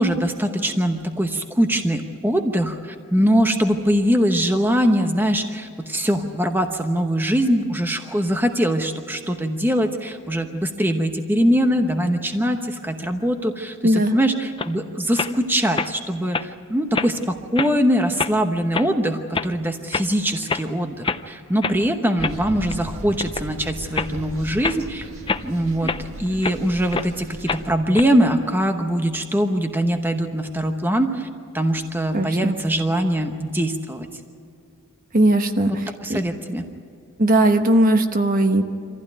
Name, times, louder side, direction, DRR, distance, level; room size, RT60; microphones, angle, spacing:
voice 1, 0.0-25.1 25.4-31.3 31.5-34.1 35.7-36.6, equal, 10° right, 5 dB, 1.0 m, -22 dB
voice 2, 13.8-14.2 32.1-32.6 35.1-36.2 37.2-38.6, right 1 dB, 40° right, 7 dB, 1.0 m, -18 dB
sound 1, 14.6-14.8 15.1-15.4 15.8-15.9 16.3-16.5 16.9-17.3 17.6-17.7 18.2-18.4 18.7-18.9 19.3-19.5 19.9-20.1 20.4-20.7 21.0-21.2 21.6-21.8 22.2-22.8 23.2-23.5 24.0-24.1 24.6-24.8 25.3-26.6 26.9-27.1 27.5-28.0, left 4 dB, 20° left, 0.5 m, -26 dB
sound 2, 22.2-27.7, right 1 dB, 75° right, 1.8 m, -36 dB
25.0 x 15.5 x 9.3 m, 2.4 s
head